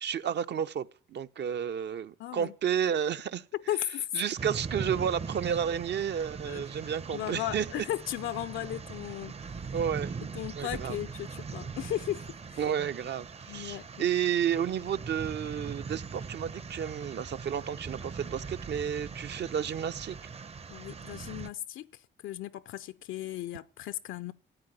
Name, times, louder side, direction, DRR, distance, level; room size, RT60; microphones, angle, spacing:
voice 1, 0.0-3.4 4.1-7.7 9.7-10.2 10.6-11.0 12.6-20.2, right 8 dB, 60° right, 0.9 m, -31 dB
voice 2, 2.2-2.5 3.5-4.1 6.5-6.6 7.1-9.3 10.3-12.6 13.5-14.1 20.7-24.3, left 13 dB, 85° left, 0.6 m, -36 dB
sound 1, 4.4-21.5, right 5 dB, 30° right, 0.8 m, -41 dB
14.0 x 8.9 x 9.3 m
cardioid pair, 90°, 20 cm